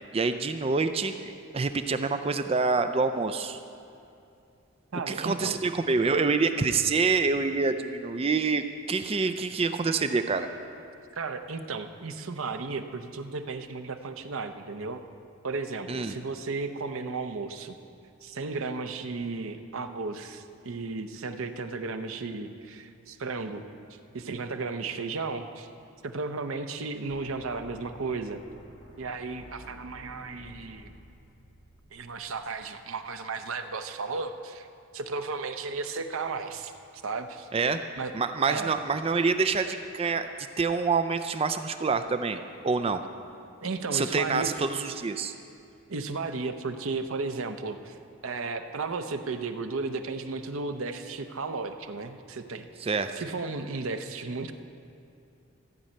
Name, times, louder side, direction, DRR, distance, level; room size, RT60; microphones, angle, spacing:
voice 1, 0.1-1.1 1.5-3.6 5.1-10.5 15.9-16.2 37.5-37.8 38.1-40.3 40.6-43.0 43.9-45.3 52.8-53.1, right 4 dB, 25° right, 9 dB, 0.4 m, -26 dB
voice 2, 4.9-5.6 11.1-15.0 15.4-17.8 18.2-23.7 24.1-25.7 26.0-28.4 29.0-30.9 31.9-34.7 34.9-36.7 37.0-37.5 38.0-38.1 38.5-38.7 43.6-44.5 45.9-48.0 48.2-52.7 53.1-54.5, right 4 dB, 75° right, 7 dB, 0.7 m, -34 dB
sound 1, 27.1-33.1, equal, 70° left, 3.4 m, -51 dB
14.5 x 5.4 x 8.7 m, 2.5 s
head